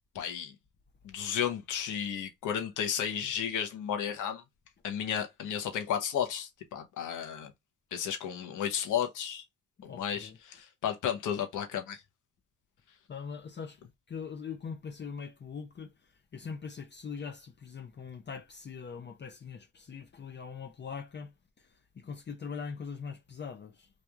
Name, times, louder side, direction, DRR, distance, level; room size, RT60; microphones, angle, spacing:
voice 1, 0.1-0.5 1.0-4.4 4.8-7.5 7.9-9.4 9.8-12.0, left 9 dB, 80° left, 1.1 m, -33 dB
voice 2, 9.8-10.4 13.1-23.9, left 6 dB, 35° left, 0.7 m, -42 dB
3.2 x 2.6 x 3.4 m
cardioid pair, 90°, 30 cm